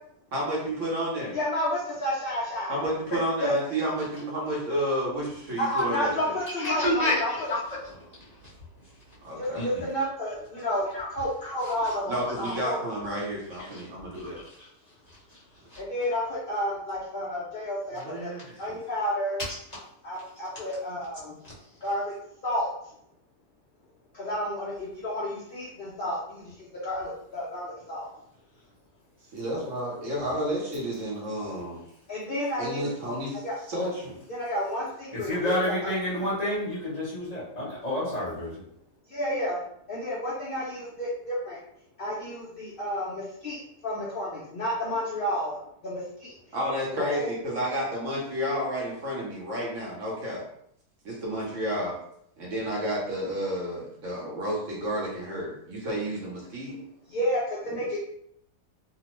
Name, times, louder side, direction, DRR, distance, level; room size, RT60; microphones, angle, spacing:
voice 1, 0.3-1.4 2.7-6.3 9.2-9.6 12.1-14.4 17.9-18.4 29.3-31.8 32.6-33.4 33.7-34.2 46.5-50.4 51.0-52.0 52.4-56.7 57.7-57.8, equal, 60° right, -4 dB, 1.0 m, -31 dB
voice 2, 1.3-2.8 3.4-3.5 5.6-7.5 9.3-12.8 15.8-18.3 18.6-19.4 20.0-21.3 21.8-22.1 22.4-22.7 24.1-26.2 26.8-28.1 32.1-32.9 33.4-33.5 34.3-35.5 35.8-35.9 39.1-39.6 39.9-41.6 42.0-46.4 46.9-47.3 57.1-58.0, equal, 65° left, -6 dB, 0.5 m, -31 dB
voice 3, 6.6-7.6 9.5-9.6 10.9-11.1 11.4-11.5 11.8-11.9 15.7-15.8 35.1-38.5, left 1 dB, 30° left, -9 dB, 1.0 m, -28 dB
2.8 x 2.0 x 3.0 m, 0.72 s
omnidirectional pair, 1.6 m